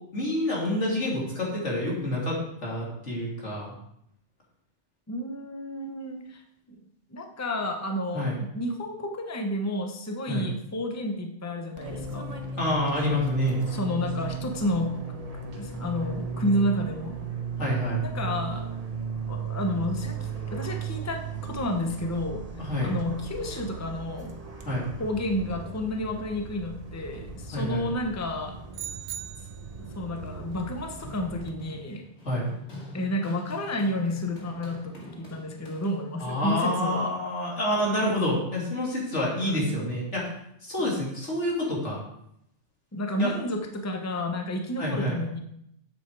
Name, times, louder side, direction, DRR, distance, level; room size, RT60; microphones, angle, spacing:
voice 1, 0.1-3.7 8.1-8.4 10.3-10.5 12.6-13.6 17.6-18.0 22.6-22.9 24.6-24.9 27.5-27.9 32.2-32.5 36.2-40.3 40.6-42.0 43.2-43.3 44.8-45.2, left 1 dB, 85° left, -4 dB, 3.2 m, -28 dB
voice 2, 5.1-6.4 6.7-6.8 7.1-12.2 13.7-14.9 15.3-17.2 17.9-18.7 19.3-22.4 22.8-24.4 25.0-28.6 29.8-32.0 32.9-37.1 39.4-39.6 42.9-45.4, left 1 dB, 15° left, 3 dB, 0.9 m, -31 dB
Fixed-wing aircraft airplane, 11.8-31.5, right 5 dB, 35° right, 1.0 m, -36 dB
sound 1, 28.7-29.8, right 10 dB, 75° right, 0.8 m, -38 dB
Run, 29.9-36.3, left 1 dB, 70° left, 2.4 m, -46 dB
8.0 x 7.8 x 4.7 m, 0.75 s
omnidirectional pair, 1.2 m